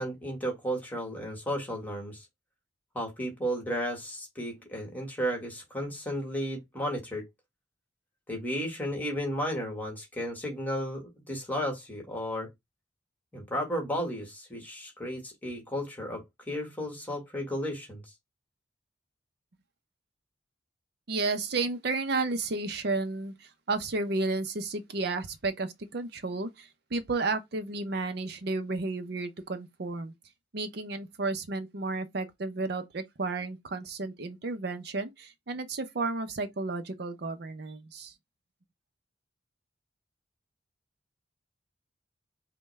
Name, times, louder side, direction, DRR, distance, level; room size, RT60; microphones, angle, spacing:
voice 1, 0.0-2.2 2.9-7.2 8.3-12.5 13.3-18.0, equal, 10° left, 1.5 m, -33 dB
voice 2, 21.1-30.1 30.5-38.1, right 3 dB, 60° right, 0.6 m, -32 dB
5.4 x 2.2 x 3.1 m
head